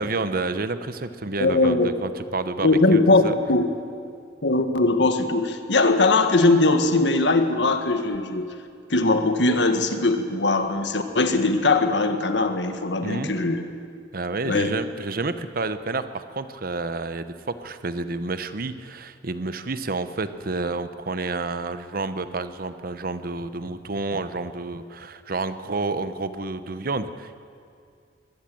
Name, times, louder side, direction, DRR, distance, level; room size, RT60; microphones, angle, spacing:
voice 1, 0.0-3.3 13.0-13.3 14.1-27.3, right 3 dB, 55° right, 11 dB, 1.0 m, -29 dB
voice 2, 1.4-1.9 2.6-3.7 4.4-8.5 8.9-13.6 14.4-14.7, left 2 dB, 75° left, 7 dB, 1.6 m, -20 dB
22.5 x 17.5 x 7.8 m, 2.3 s
head